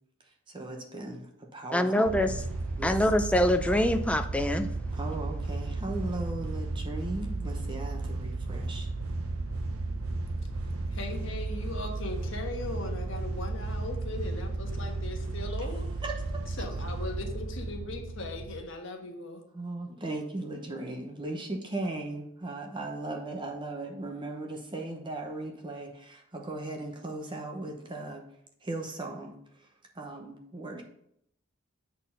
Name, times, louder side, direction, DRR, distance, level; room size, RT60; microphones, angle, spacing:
voice 1, 0.5-2.1 2.8-2.9 4.9-8.9 16.0-16.1 19.5-28.2 28.6-29.3 30.0-30.8, right 2 dB, 25° right, 0.8 m, -37 dB
voice 2, 1.7-2.4 2.8-4.7, left 1 dB, 5° left, 0.4 m, -25 dB
sound 1, 2.1-18.6, right 2 dB, 90° right, 0.7 m, -34 dB
voice 3, 10.9-15.9 16.6-19.4, left 2 dB, 60° left, 1.3 m, -39 dB
8.1 x 4.3 x 5.4 m
head